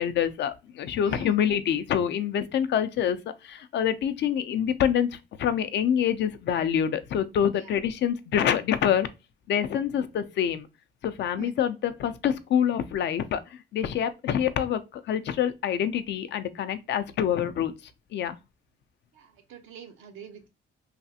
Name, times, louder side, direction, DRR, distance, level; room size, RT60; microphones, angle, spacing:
voice 1, 0.0-3.2 3.4-9.1 9.5-10.7 11.0-17.7 18.1-18.4, left 9 dB, 65° left, 0.4 m, -26 dB
voice 2, 1.0-1.4 11.4-11.5 19.1-20.5, right 8 dB, 85° right, 0.7 m, -44 dB
3.3 x 2.4 x 2.7 m
cardioid pair, 90°, 20 cm